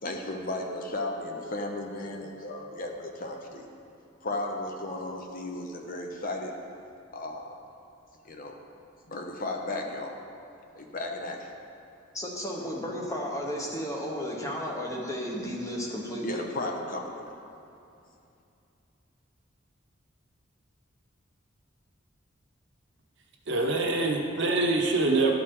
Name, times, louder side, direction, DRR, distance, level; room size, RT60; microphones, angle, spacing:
voice 1, 0.0-3.7 4.2-6.5 7.1-7.6 8.2-8.6 9.1-10.2 10.8-11.5 16.2-17.4, left 2 dB, 45° left, 2 dB, 0.7 m, -35 dB
voice 2, 12.1-16.4, equal, 15° left, -1 dB, 0.9 m, -33 dB
voice 3, 23.5-25.3, right 2 dB, 60° right, 1 dB, 0.9 m, -25 dB
12.0 x 4.7 x 3.8 m, 2.6 s
head